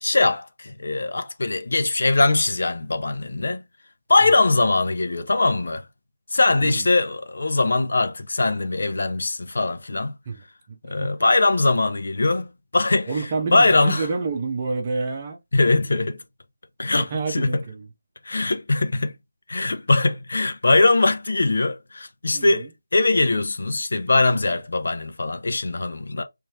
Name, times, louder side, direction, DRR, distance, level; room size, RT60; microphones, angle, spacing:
voice 1, 0.0-3.6 4.1-5.8 6.3-10.1 10.8-13.1 13.5-14.1 15.5-16.2 16.8-17.6 18.3-19.1 19.5-26.2, left 2 dB, 60° left, 0.7 m, -21 dB
voice 2, 10.3-11.1 13.1-15.4 17.0-17.9 22.3-22.7, right 4 dB, 20° right, 0.9 m, -29 dB
3.3 x 3.2 x 3.0 m
figure-of-eight pair, 175°, 0 cm